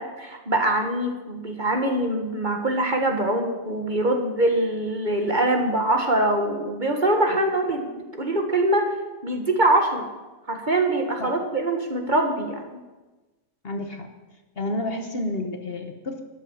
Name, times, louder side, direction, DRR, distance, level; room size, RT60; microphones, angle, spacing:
voice 1, 0.0-7.9 8.2-8.9 9.2-10.0 10.5-12.7, right 1 dB, 35° right, 4 dB, 1.6 m, -23 dB
voice 2, 13.6-14.1 14.6-16.2, left 1 dB, 45° left, 5 dB, 1.3 m, -30 dB
12.5 x 10.0 x 7.3 m, 1.2 s
omnidirectional pair, 1.5 m